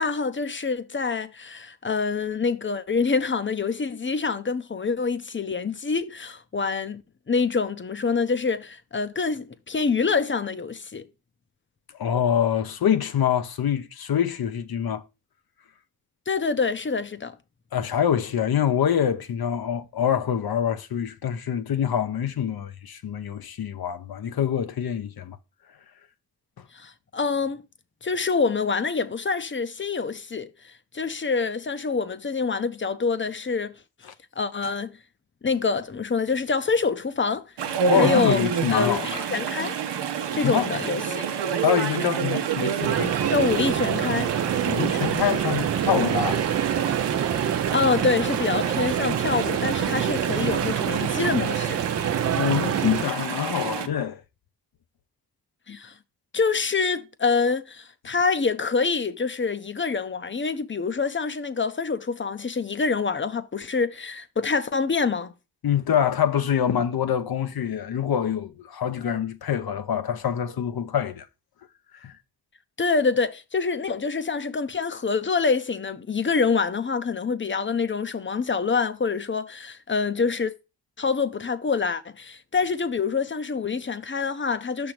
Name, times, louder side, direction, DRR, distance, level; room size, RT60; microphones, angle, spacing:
voice 1, 0.0-7.0 7.3-11.1 16.3-17.4 26.7-27.6 28.0-33.8 34.4-34.9 35.4-37.5 37.9-38.4 38.7-39.8 40.3-41.3 43.3-44.3 47.7-51.8 55.7-55.9 56.3-65.3 72.8-80.5 81.0-84.9, left 4 dB, 30° left, 0.7 m, -26 dB
voice 2, 12.0-15.0 17.7-25.4 34.1-34.2 37.9-39.2 40.4-40.7 41.6-43.2 44.7-46.5 52.3-54.2 65.6-71.3 71.9-72.2, left 9 dB, 65° left, 0.8 m, -25 dB
Chatter / Stream, 37.6-53.9, right 7 dB, 90° right, 0.8 m, -29 dB
sound 1, 42.8-53.0, right 9 dB, 40° right, 0.5 m, -26 dB
6.0 x 3.5 x 5.9 m
cardioid pair, 60°, 41 cm